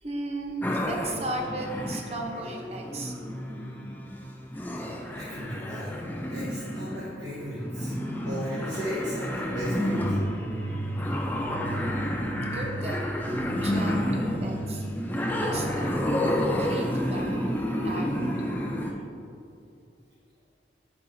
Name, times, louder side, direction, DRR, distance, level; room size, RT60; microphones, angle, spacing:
voice 1, 0.0-0.6 0.9-3.1 12.4-13.2 13.6-14.8 15.3-16.0 16.6-17.5 17.8-18.6, right 2 dB, 35° right, 0 dB, 0.8 m, -36 dB
sound 1, 0.6-18.9, equal, 10° left, 0.5 m, -30 dB
voice 2, 5.1-5.9 6.3-10.0, equal, 75° right, -10 dB, 1.3 m, -35 dB
sound 2, 10.0-16.2, right 1 dB, 55° left, 1.3 m, -36 dB
8.8 x 5.5 x 2.7 m, 2.6 s
head